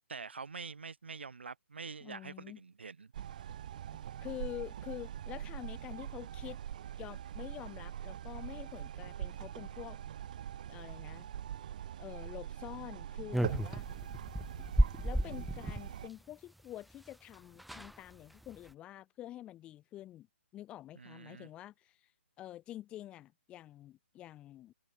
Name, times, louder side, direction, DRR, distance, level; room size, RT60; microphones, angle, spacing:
voice 1, 0.1-3.1 20.9-21.5, right 5 dB, 60° right, 3.3 m, -46 dB
voice 2, 2.0-2.6 4.2-6.6 7.0-10.0 10.7-11.3 12.0-13.8 15.0-20.3 20.5-22.0 22.4-24.7, left 13 dB, 15° left, 2.8 m, -47 dB
sound 1, 3.1-16.1, right 10 dB, 40° right, 1.9 m, -43 dB
sound 2, 13.3-15.9 17.1-17.2 17.3-17.4 17.6-18.0 18.4-18.7, right 1 dB, ahead, 1.9 m, -33 dB
figure-of-eight pair, 135°, 7 cm